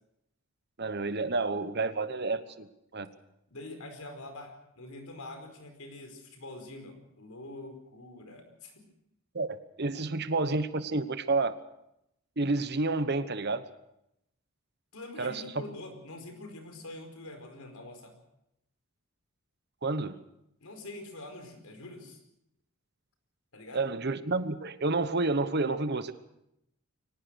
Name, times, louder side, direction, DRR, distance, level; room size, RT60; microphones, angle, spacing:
voice 1, 0.8-2.7 2.9-3.1 9.3-11.5 12.4-13.6 15.2-15.4 19.8-20.2 23.7-26.1, right 3 dB, 50° right, 12 dB, 1.2 m, -30 dB
voice 2, 3.5-8.9 14.9-18.2 20.6-22.2 23.5-23.8, left 2 dB, 75° left, 6 dB, 5.0 m, -45 dB
23.5 x 19.0 x 6.4 m, 0.81 s
head